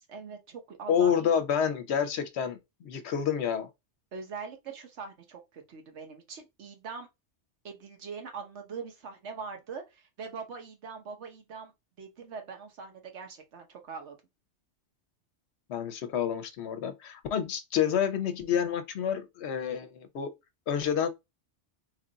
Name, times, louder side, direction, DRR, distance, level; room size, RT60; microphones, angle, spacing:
voice 1, 0.1-1.3 4.1-7.1 7.6-11.7 12.0-14.2, right 5 dB, 75° right, 1.2 m, -42 dB
voice 2, 0.9-3.7 15.7-20.3 20.7-21.1, left 8 dB, 70° left, 0.9 m, -28 dB
3.1 x 2.4 x 3.8 m
omnidirectional pair, 1.2 m